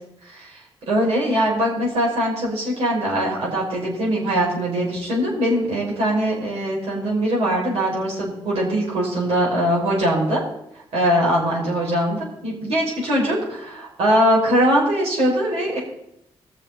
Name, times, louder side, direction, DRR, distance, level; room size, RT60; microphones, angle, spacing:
voice 1, 0.2-0.6 0.8-10.4 10.9-15.8, equal, 85° right, -5 dB, 5.7 m, -21 dB
21.5 x 7.3 x 4.0 m, 0.80 s
cardioid pair, 70°, 10 cm